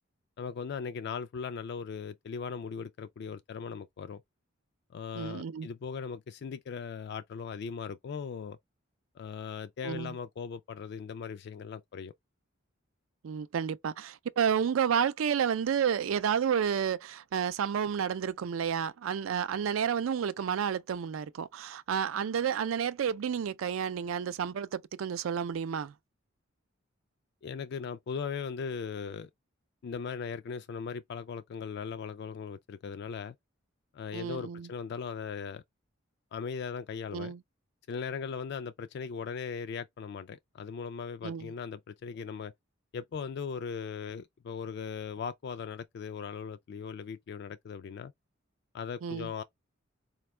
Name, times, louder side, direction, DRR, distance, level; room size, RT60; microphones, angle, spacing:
voice 1, 0.4-4.2 4.9-8.6 9.2-12.1 27.4-29.3 29.8-33.4 33.9-35.6 36.3-37.3 37.9-42.5 42.9-48.1 48.7-49.4, left 6 dB, 55° left, 0.3 m, -38 dB
voice 2, 5.2-5.7 9.8-10.1 13.2-25.9 34.1-34.7 37.1-37.4 41.2-41.5 49.0-49.3, right 7 dB, 80° right, 0.4 m, -31 dB
4.2 x 2.3 x 3.0 m
head